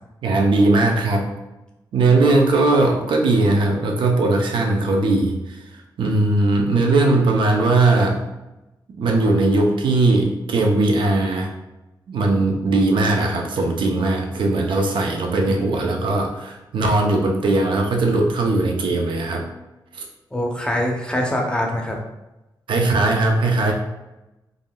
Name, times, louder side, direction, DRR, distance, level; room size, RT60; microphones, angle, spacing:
voice 1, 0.2-1.3 1.9-5.6 6.0-8.2 9.0-11.5 12.1-19.4 19.9-20.0 22.7-23.7, right 2 dB, 75° right, 2 dB, 0.5 m, -19 dB
voice 2, 15.5-15.9 20.3-22.0, left 1 dB, 10° left, 0 dB, 0.6 m, -24 dB
3.5 x 2.5 x 2.2 m, 1.0 s
cardioid pair, 100°, 8 cm